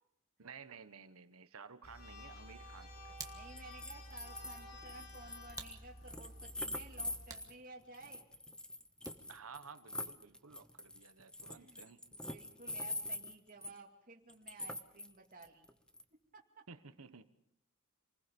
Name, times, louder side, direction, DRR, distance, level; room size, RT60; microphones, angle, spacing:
voice 1, 0.4-3.2 9.3-12.0 16.7-17.3, right 5 dB, 80° right, 11 dB, 1.2 m, -54 dB
sound 1, 1.8-7.3, left 1 dB, 90° left, 3.9 m, -52 dB
Hands, 2.6-9.5, right 4 dB, 15° right, 1.7 m, -56 dB
sound 2, 3.2-3.3 3.6-7.5 7.9-13.8 14.3-15.1 15.4-16.0, left 1 dB, 5° left, 0.9 m, -44 dB
voice 2, 3.3-8.3 11.5-11.9 12.1-15.7 16.3-16.6, right 3 dB, 40° right, 0 dB, 2.4 m, -55 dB
27.5 x 20.0 x 5.4 m, 0.75 s
head